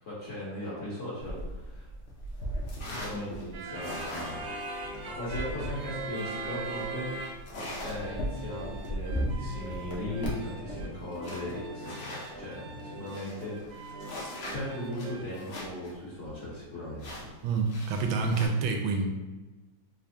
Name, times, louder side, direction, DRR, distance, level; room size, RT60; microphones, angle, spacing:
voice 1, 0.0-1.9 3.0-4.6 5.1-7.2 7.8-14.2 14.5-17.3, left 1 dB, 45° left, -7 dB, 1.1 m, -38 dB
sound 1, 1.2-12.4 12.8-12.9 13.1-15.9 16.2-16.3 17.0-18.5, equal, 90° left, 0.5 m, -38 dB
sound 2, 3.5-7.6 7.8-15.5, right 2 dB, 65° right, 0.9 m, -41 dB
voice 2, 17.4-19.1, right 4 dB, 80° right, 3 dB, 1.4 m, -27 dB
3.4 x 3.3 x 2.6 m, 1.2 s
omnidirectional pair, 2.2 m